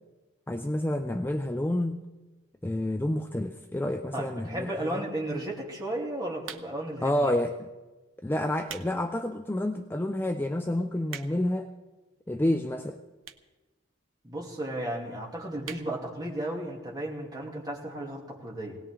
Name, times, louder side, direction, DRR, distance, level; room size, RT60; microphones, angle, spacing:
voice 1, 0.5-2.0 2.6-5.0 7.0-7.7 8.2-11.7 12.3-13.0, left 1 dB, 10° left, 6 dB, 0.4 m, -29 dB
voice 2, 4.1-7.3 14.2-18.8, right 1 dB, 20° right, -2 dB, 2.6 m, -34 dB
sound 1, 6.4-7.0 7.7-7.9 8.4-8.9 9.4-9.5 10.1-10.2 10.4-10.5 10.7-11.6 12.4-12.5 13.2-13.6 13.9-14.0 14.1-14.2 14.5-14.6 14.9-15.1 15.6-15.9 16.3-16.4 16.6-16.7, right 8 dB, 85° right, 0.9 m, -42 dB
19.5 x 18.0 x 3.7 m, 1.2 s
head